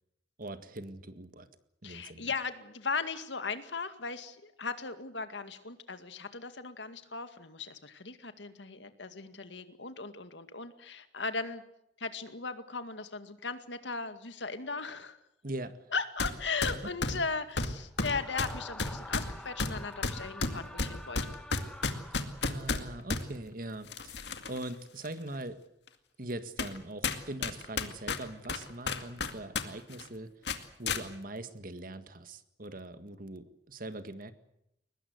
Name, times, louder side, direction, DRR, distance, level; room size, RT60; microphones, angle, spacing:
voice 1, 0.4-1.5 1.8-2.3 15.4-15.8 22.1-25.6 26.2-30.3 30.8-34.3, right 1 dB, 50° right, 11 dB, 1.8 m, -42 dB
voice 2, 1.8-11.6 12.0-15.2 15.9-21.4, left 4 dB, 85° left, 10 dB, 2.1 m, -37 dB
sound 1, 16.2-16.3 16.6-23.2 23.9-24.6 25.1-25.2 25.9-26.0 26.6-26.8 27.0-29.7 29.9-30.1 30.5-31.0, left 3 dB, 70° left, 2.2 m, -32 dB
Screaming, 18.0-22.8, left 1 dB, 5° left, 1.5 m, -48 dB
22.5 x 20.5 x 8.0 m, 0.80 s
head